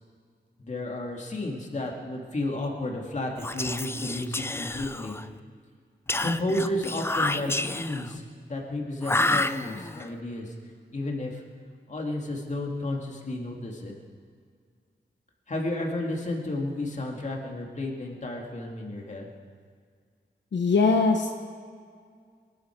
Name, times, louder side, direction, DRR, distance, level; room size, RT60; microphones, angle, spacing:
voice 1, 0.6-5.2 6.2-8.2 8.5-10.5 10.9-11.4 11.9-13.9 15.5-19.3, left 1 dB, 40° left, 0 dB, 2.4 m, -32 dB
Whispering, 3.4-5.3 6.1-8.1 9.0-10.1, left 2 dB, 15° left, 0.4 m, -29 dB
voice 2, 20.5-21.3, left 4 dB, 85° left, 3 dB, 1.0 m, -21 dB
23.0 x 13.0 x 4.6 m, 2.1 s
wide cardioid pair, 140°, 18 cm